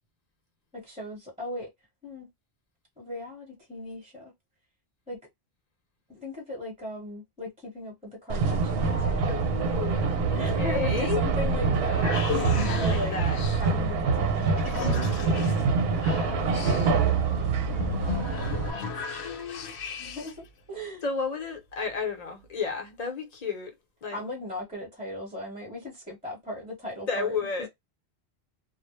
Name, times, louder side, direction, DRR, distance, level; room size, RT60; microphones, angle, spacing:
voice 1, 0.7-1.7 2.0-2.3 3.0-4.3 5.1-5.2 6.1-9.3 10.4-13.2 13.5-17.8 20.0-21.0 24.1-27.7, left 1 dB, 10° right, 0.9 m, -38 dB
sound 1, 8.3-18.7, right 4 dB, 70° right, 0.8 m, -25 dB
voice 2, 9.3-11.2 12.7-13.4 18.4-19.7 21.0-23.7 24.0-24.2 27.1-27.7, left 5 dB, 40° left, 0.8 m, -33 dB
sound 2, 11.9-20.5, left 6 dB, 85° left, 0.8 m, -36 dB
2.1 x 2.1 x 2.9 m
omnidirectional pair, 1.1 m